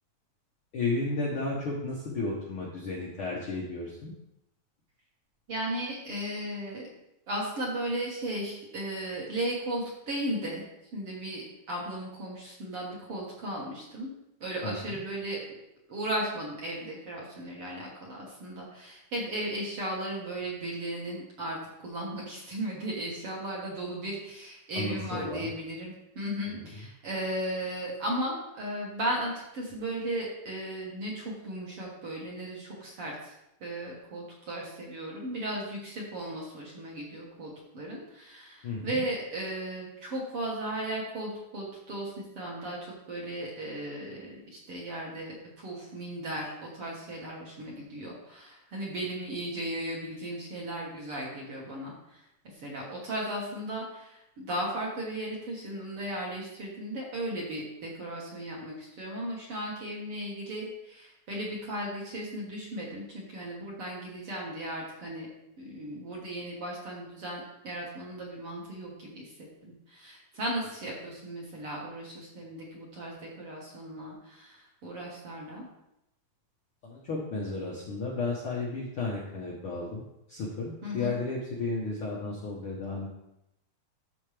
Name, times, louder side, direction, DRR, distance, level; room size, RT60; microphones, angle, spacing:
voice 1, 0.7-4.1 14.6-15.0 24.7-25.5 26.5-26.7 38.6-39.0 76.8-80.0 80.3-83.1, left 3 dB, 85° left, -4 dB, 1.1 m, -33 dB
voice 2, 5.5-6.9 7.3-10.6 10.9-14.1 14.4-15.4 15.9-21.6 21.8-33.3 33.6-42.8 43.1-65.3 65.6-75.7 80.8-81.1, right 1 dB, 55° right, -3 dB, 1.8 m, -36 dB
13.0 x 4.5 x 3.4 m, 0.84 s
omnidirectional pair, 4.3 m